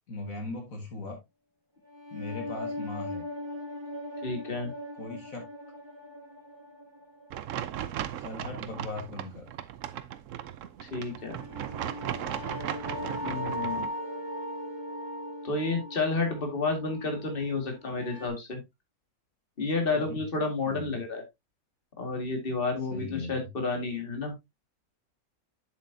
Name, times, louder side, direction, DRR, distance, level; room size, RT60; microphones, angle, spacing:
voice 1, 0.1-1.2 2.1-3.2 5.0-5.5 8.2-9.5 20.1-20.2 20.6-20.9 22.9-23.4, left 2 dB, 65° left, 3 dB, 2.2 m, -38 dB
sound 1, 1.9-7.7 11.0-18.3, left 1 dB, 20° right, 1.7 m, -39 dB
voice 2, 4.2-4.7 10.9-11.4 13.2-13.9 15.4-18.6 19.6-21.2 22.0-24.3, left 3 dB, 40° left, 4 dB, 2.2 m, -30 dB
sound 2, 7.3-13.9, right 11 dB, 65° right, 0.9 m, -37 dB
7.5 x 7.5 x 2.7 m, 0.20 s
omnidirectional pair, 1.5 m